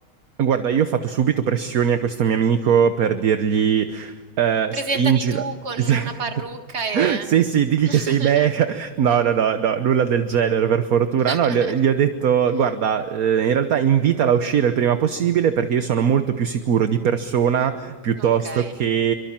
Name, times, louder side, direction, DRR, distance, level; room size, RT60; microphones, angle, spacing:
voice 1, 0.4-5.4 5.8-6.1 6.9-19.1, right 8 dB, 55° right, 9 dB, 1.3 m, -20 dB
voice 2, 4.7-7.3 7.9-8.5 11.3-11.7 18.2-18.7, right 3 dB, 35° right, 6 dB, 1.9 m, -30 dB
28.5 x 24.0 x 7.4 m, 1.3 s
omnidirectional pair, 2.1 m